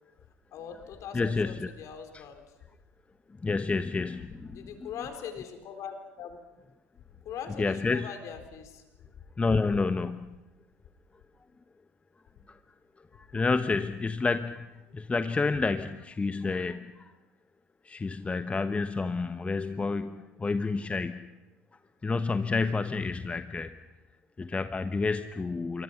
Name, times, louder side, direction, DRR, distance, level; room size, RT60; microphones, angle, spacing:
voice 1, 0.5-2.4 4.5-6.4 7.2-8.8, left 7 dB, 50° left, 6 dB, 4.0 m, -41 dB
voice 2, 1.1-1.7 2.1-2.2 3.4-4.7 7.6-8.1 9.4-10.3 12.5-12.6 13.1-14.7 14.9-17.1 17.8-21.3 22.0-23.7 24.4-25.8, left 4 dB, 20° left, 10 dB, 1.0 m, -29 dB
27.0 x 23.5 x 5.8 m, 1.1 s
figure-of-eight pair, 70°, 7 cm